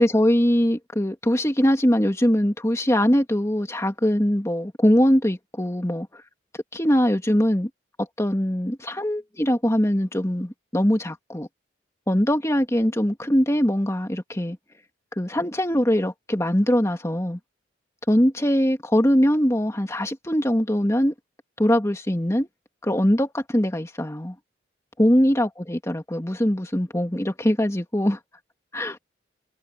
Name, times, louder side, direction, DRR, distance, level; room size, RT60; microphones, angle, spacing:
voice 1, 0.0-6.2 6.7-7.7 8.2-11.5 12.1-14.6 15.2-17.4 18.1-21.1 21.6-22.5 22.8-24.4 25.0-28.2 28.7-29.0, equal, 15° left, 2.1 m, -22 dB
head